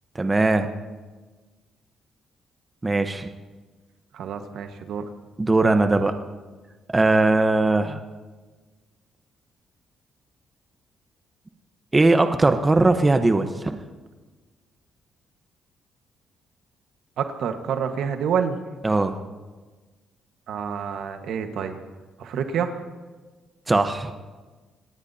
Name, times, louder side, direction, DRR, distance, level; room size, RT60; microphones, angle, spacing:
voice 1, 0.1-0.7 2.8-3.3 5.4-6.1 6.9-8.0 11.9-13.8 18.8-19.2 23.7-24.3, right 2 dB, 20° right, 7 dB, 1.1 m, -20 dB
voice 2, 4.1-5.0 17.2-18.6 20.5-21.8 22.2-22.8, right 7 dB, 75° right, 6 dB, 1.5 m, -27 dB
27.0 x 19.0 x 2.9 m, 1.3 s
cardioid pair, 90°, 0 cm